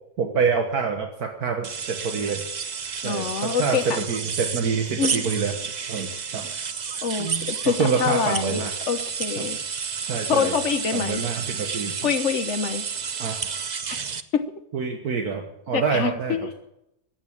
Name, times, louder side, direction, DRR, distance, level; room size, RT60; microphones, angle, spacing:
voice 1, 0.2-2.5 3.0-5.6 5.9-6.5 6.9-7.5 7.8-8.7 9.4-9.5 10.1-10.5 10.9-12.0 13.2-13.4 14.7-16.5, right 5 dB, 70° right, 4 dB, 1.8 m, -26 dB
sound 1, 1.6-14.2, right 6 dB, 45° right, 0.6 m, -31 dB
voice 2, 3.0-4.0 5.0-5.3 7.0-9.6 10.3-11.2 12.0-12.8 13.9-14.4 15.7-16.5, left 7 dB, 50° left, 10 dB, 1.3 m, -26 dB
15.0 x 9.6 x 8.7 m, 0.83 s
omnidirectional pair, 1.7 m